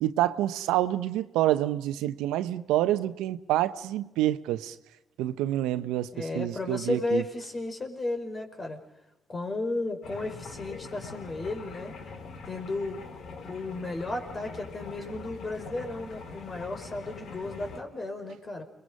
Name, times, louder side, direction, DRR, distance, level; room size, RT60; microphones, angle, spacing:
voice 1, 0.0-4.7 5.2-7.2, right 14 dB, 85° right, 0.8 m, -27 dB
voice 2, 6.1-8.8 9.3-11.9 12.5-13.0 13.5-18.6, left 2 dB, 40° left, 5.2 m, -34 dB
sound 1, 10.0-17.8, left 4 dB, 70° left, 2.6 m, -43 dB
30.0 x 22.0 x 5.4 m
supercardioid pair, 55°, 0 cm